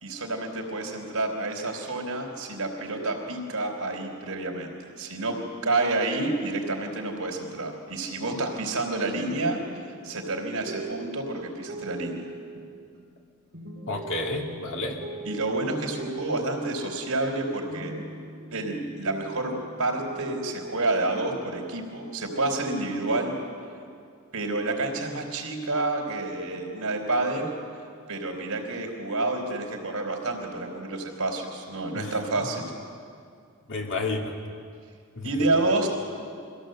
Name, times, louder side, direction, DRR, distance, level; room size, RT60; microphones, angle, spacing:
voice 1, 0.0-5.4 5.6-12.2 15.2-17.9 18.5-23.3 24.3-27.6 28.1-32.7 35.2-35.9, right 2 dB, 80° right, 3 dB, 3.8 m, -29 dB
sound 1, 9.2-17.4 17.7-20.8, right 3 dB, 50° right, 3.0 m, -41 dB
voice 2, 13.9-15.0 31.9-32.1 33.7-34.3 35.2-35.5, left 3 dB, 60° left, 1 dB, 2.5 m, -31 dB
23.5 x 16.0 x 7.8 m, 2.3 s
head